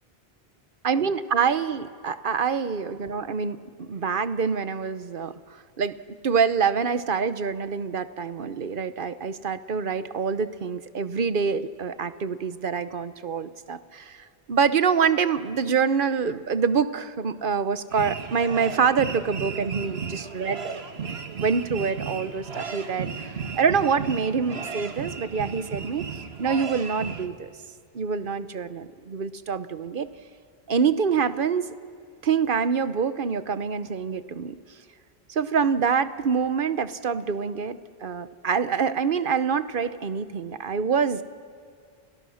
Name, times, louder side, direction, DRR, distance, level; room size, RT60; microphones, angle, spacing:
voice 1, 0.8-5.3 5.8-6.0 6.2-20.7 21.0-21.1 21.4-26.0 26.4-27.5 27.9-30.1 30.7-31.7 32.2-34.6 35.3-41.2, right 6 dB, 55° right, 13 dB, 1.0 m, -26 dB
sound 1, 17.9-27.3, right 6 dB, 75° right, 1.7 m, -34 dB
30.0 x 29.5 x 6.4 m, 2.2 s
omnidirectional pair, 1.1 m